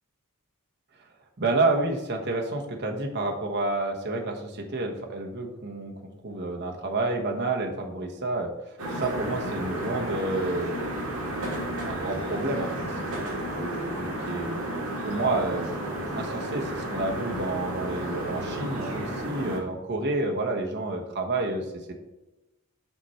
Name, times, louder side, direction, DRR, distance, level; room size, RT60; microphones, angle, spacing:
voice 1, 1.4-5.9 6.2-10.8 11.6-12.7 13.3-15.7 16.1-21.9, right 2 dB, 50° right, 2 dB, 1.2 m, -29 dB
sound 1, 8.8-19.6, right 1 dB, 75° right, 2.1 m, -32 dB
5.9 x 4.5 x 5.6 m, 1.0 s
head